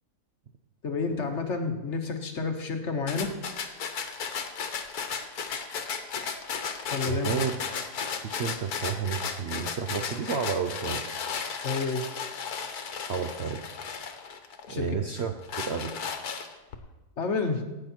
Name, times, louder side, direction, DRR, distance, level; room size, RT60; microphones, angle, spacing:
voice 1, 0.8-3.3 6.9-7.3 11.6-12.0 14.7-14.9 17.2-17.6, left 4 dB, 50° left, 5 dB, 1.2 m, -29 dB
sound 1, 3.1-14.7 15.2-16.8, left 6 dB, 65° left, 1.5 m, -35 dB
voice 2, 7.1-7.7 8.2-11.0 13.0-13.6 14.7-16.0, right 6 dB, 55° right, 5 dB, 0.8 m, -31 dB
16.0 x 9.0 x 4.4 m, 1.1 s
omnidirectional pair, 1.8 m